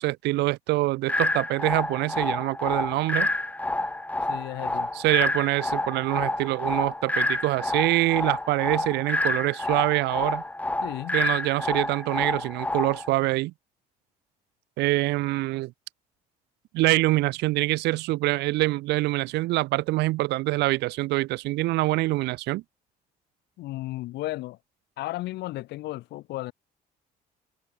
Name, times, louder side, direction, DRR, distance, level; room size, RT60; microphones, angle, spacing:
voice 1, 0.0-3.3 4.9-10.4 11.1-13.5 14.8-15.7 16.7-22.6, right 19 dB, 85° right, 6.8 m, -25 dB
sound 1, 1.1-13.1, left 2 dB, 10° left, 2.0 m, -28 dB
voice 2, 4.3-4.9 10.8-11.2 23.6-24.6 25.0-26.5, left 18 dB, 80° left, 3.9 m, -34 dB
cardioid pair, 110°, 17 cm